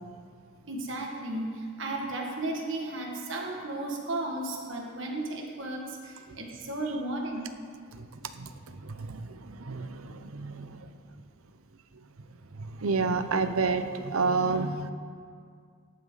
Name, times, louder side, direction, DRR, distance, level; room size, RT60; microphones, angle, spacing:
voice 1, 0.7-7.6, right 2 dB, 60° right, 0 dB, 1.9 m, -34 dB
voice 2, 7.9-10.9 12.5-14.9, right 4 dB, 85° right, 10 dB, 0.8 m, -30 dB
17.5 x 10.5 x 4.0 m, 2.1 s
head